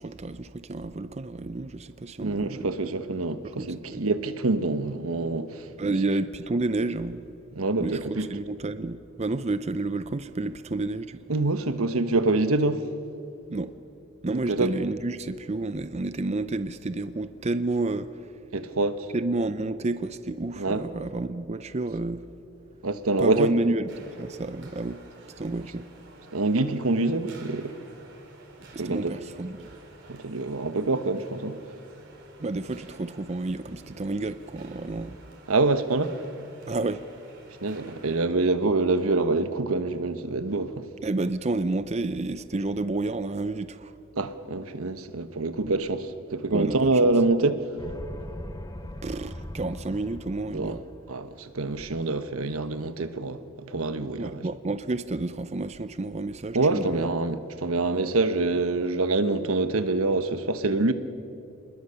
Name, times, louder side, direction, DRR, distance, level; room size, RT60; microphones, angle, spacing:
voice 1, 0.0-2.8 3.6-4.0 5.8-7.2 7.8-11.2 13.5-13.7 14.2-18.3 19.1-22.3 23.2-25.0 25.4-25.9 28.7-29.7 32.4-35.2 36.7-37.0 41.0-44.0 46.5-47.0 49.0-50.8 54.2-57.1, right 2 dB, 30° right, 0.5 m, -30 dB
voice 2, 2.2-5.7 7.5-8.3 11.3-12.8 14.3-14.7 18.5-19.1 20.6-20.8 22.8-23.5 26.3-27.7 28.8-29.1 30.1-31.6 35.5-36.2 37.6-40.9 44.2-47.6 50.5-50.7 51.1-53.4 53.7-54.4 56.5-60.9, right 2 dB, 85° right, 1.1 m, -25 dB
sound 1, 23.9-38.2, right 2 dB, 60° right, 4.3 m, -51 dB
sound 2, 47.8-51.3, left 1 dB, 15° left, 0.7 m, -40 dB
26.5 x 20.5 x 6.9 m
head